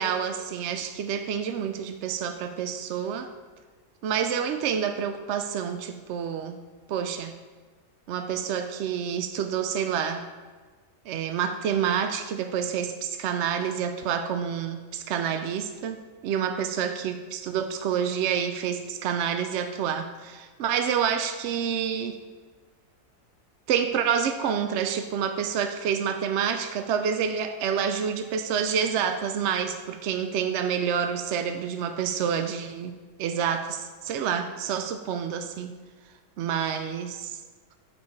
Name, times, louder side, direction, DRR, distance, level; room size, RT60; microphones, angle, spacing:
voice 1, 0.0-3.3 4.0-6.6 6.9-7.3 8.1-10.2 11.1-22.2 23.7-35.8 36.4-37.4, right 7 dB, 70° right, 7 dB, 0.7 m, -28 dB
8.4 x 5.1 x 4.7 m, 1.4 s
omnidirectional pair, 1.6 m